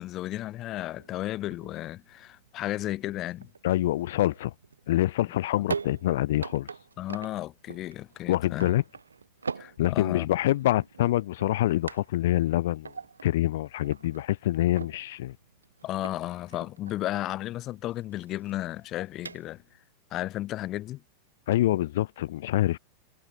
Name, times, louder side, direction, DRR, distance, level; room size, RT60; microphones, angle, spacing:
voice 1, 0.0-3.5 5.6-5.7 7.0-8.7 9.5-10.3 15.8-19.6 20.1-21.0, left 15 dB, 35° left, 4.4 m, -34 dB
sound 1, 1.0-19.8, right 5 dB, 75° right, 7.9 m, -43 dB
voice 2, 3.6-4.5 4.9-6.7 8.3-8.8 9.8-12.9 13.2-15.4 21.5-22.8, left 14 dB, 55° left, 0.9 m, -25 dB
figure-of-eight pair, 90°, 0 cm